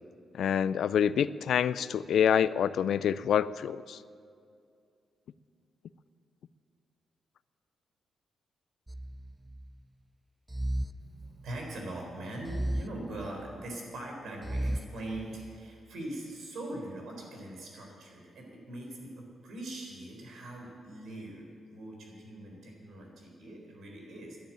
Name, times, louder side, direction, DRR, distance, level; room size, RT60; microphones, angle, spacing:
voice 1, 0.4-4.0, left 8 dB, 75° left, 17 dB, 0.4 m, -27 dB
sound 1, 8.9-9.8 10.5-11.8 12.5-13.8 14.4-15.6, right 1 dB, 15° right, 0.3 m, -36 dB
voice 2, 11.0-24.4, right 1 dB, 80° right, 0 dB, 4.0 m, -42 dB
12.0 x 10.0 x 8.8 m, 2.4 s
wide cardioid pair, 135°, 0 cm